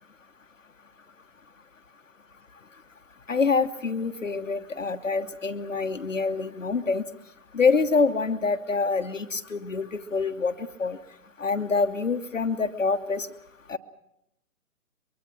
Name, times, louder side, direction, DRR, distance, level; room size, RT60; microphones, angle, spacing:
voice 1, 3.3-7.0 7.5-11.0 11.4-13.3 13.7-13.8, left 4 dB, 55° left, 6 dB, 1.1 m, -26 dB
23.5 x 23.0 x 6.0 m, 0.83 s
figure-of-eight pair, 145°, 44 cm